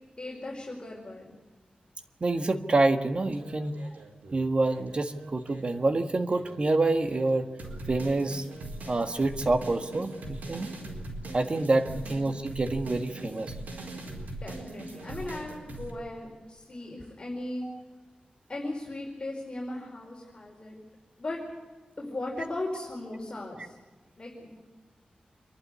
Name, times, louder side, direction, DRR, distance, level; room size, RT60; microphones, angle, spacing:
voice 1, 0.2-1.3 11.9-12.2 14.4-17.7 18.5-20.8 21.2-21.4 22.0-23.7 24.2-24.6, left 2 dB, 30° left, -2 dB, 4.8 m, -37 dB
voice 2, 2.2-3.8 4.3-7.5 7.9-8.4 8.9-10.7 11.3-13.5, right 2 dB, 40° right, 7 dB, 1.6 m, -27 dB
sound 1, 3.2-5.8 6.3-15.9, right 2 dB, 90° right, 4.5 m, -41 dB
26.5 x 11.5 x 9.7 m, 1.3 s
wide cardioid pair, 100°, 3 cm